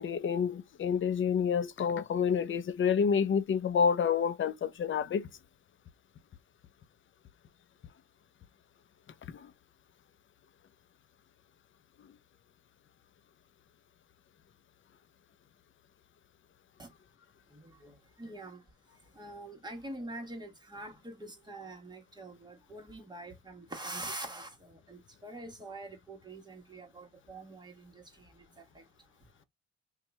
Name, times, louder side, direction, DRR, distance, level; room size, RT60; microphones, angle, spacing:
voice 1, 0.0-5.3, left 7 dB, 40° left, 0.6 m, -28 dB
voice 2, 17.5-28.8, right 2 dB, 15° right, 1.3 m, -45 dB
2.8 x 2.3 x 4.1 m
cardioid pair, 90°, 30 cm